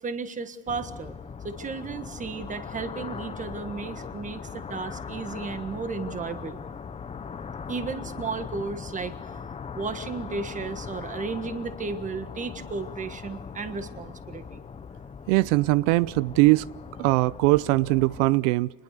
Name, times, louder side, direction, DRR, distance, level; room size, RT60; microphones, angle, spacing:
voice 1, 0.0-1.2 1.4-6.6 7.7-9.1 9.7-14.6, right 4 dB, 20° right, 1.5 m, -34 dB
sound 1, 0.7-18.4, left 6 dB, 15° left, 0.8 m, -40 dB
voice 2, 15.3-16.7 17.0-18.7, right 21 dB, 80° right, 0.6 m, -21 dB
25.5 x 21.0 x 6.7 m
cardioid pair, 145°, 38 cm